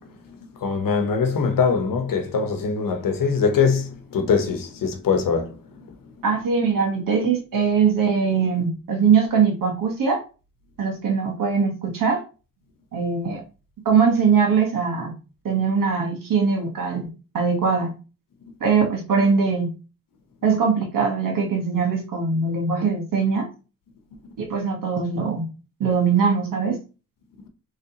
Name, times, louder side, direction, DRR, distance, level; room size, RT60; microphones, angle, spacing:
voice 1, 0.6-5.6, left 5 dB, 75° left, 0.9 m, -22 dB
voice 2, 6.2-10.2 10.8-12.2 12.9-13.4 13.8-15.1 15.4-17.1 17.3-17.9 18.6-19.7 20.4-23.5 24.4-25.4 25.8-26.8, right 5 dB, 75° right, 1.3 m, -21 dB
4.1 x 3.2 x 2.8 m
cardioid pair, 65°, 33 cm